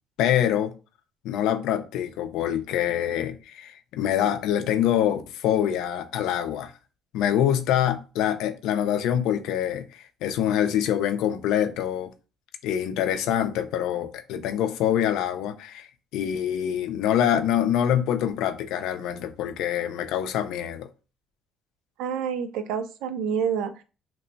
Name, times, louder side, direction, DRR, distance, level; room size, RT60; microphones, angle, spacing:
voice 1, 0.2-0.7 1.2-6.7 7.1-12.1 12.6-15.9 16.1-20.9, left 10 dB, 75° left, 0.4 m, -25 dB
voice 2, 22.0-23.8, right 7 dB, 80° right, 0.4 m, -28 dB
3.0 x 2.2 x 3.9 m
cardioid pair, 175°, 0 cm